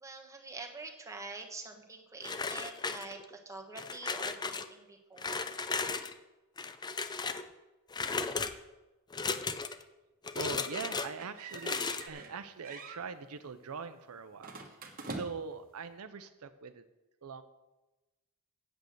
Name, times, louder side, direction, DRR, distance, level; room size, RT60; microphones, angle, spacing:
voice 1, 0.0-5.4, right 3 dB, 15° right, 2 dB, 1.2 m, -46 dB
sound 1, 2.2-3.4 3.8-4.7 5.2-6.1 6.6-7.5 7.9-8.5 9.1-9.8 10.2-11.1 11.5-12.1, left 4 dB, 20° left, 0.4 m, -35 dB
voice 2, 10.4-16.9 17.2-17.4, right 5 dB, 70° right, 10 dB, 0.6 m, -42 dB
sound 2, 11.2-12.4 12.6-13.0 14.4-15.6, right 3 dB, 40° right, 1.3 m, -45 dB
8.4 x 7.8 x 6.6 m, 1.1 s
head